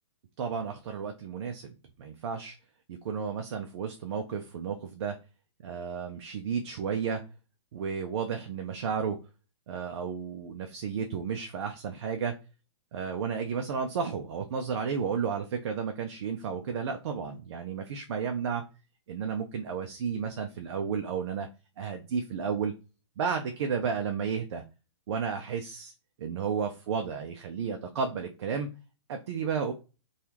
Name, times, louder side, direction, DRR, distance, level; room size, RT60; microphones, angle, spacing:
voice 1, 0.4-1.7 2.0-2.5 2.9-5.2 5.6-7.2 7.7-9.2 9.7-12.3 12.9-18.6 19.1-21.5 21.8-22.7 23.2-24.6 25.1-25.9 26.2-28.7 29.1-29.7, right 6 dB, 60° right, 5 dB, 0.4 m, -32 dB
3.3 x 2.3 x 2.9 m, 0.32 s
hypercardioid pair, 140°, 16 cm